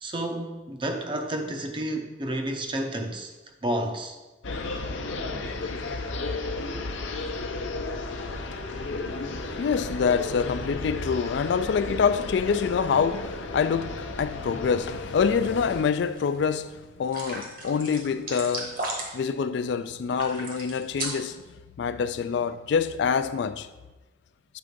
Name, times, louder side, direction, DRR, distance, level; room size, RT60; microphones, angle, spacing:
voice 1, 0.0-3.3 3.6-4.2, right 1 dB, 25° right, 0.6 m, -30 dB
sound 1, 4.4-15.8, left 3 dB, 85° left, 0.7 m, -33 dB
voice 2, 9.1-18.8 19.1-21.4 21.8-23.7, left 6 dB, 65° left, 0.3 m, -26 dB
sound 2, 15.7-16.2 16.5-16.6 17.1-19.3 20.1-21.4, right 2 dB, 45° right, 1.3 m, -35 dB
8.1 x 3.7 x 5.1 m
head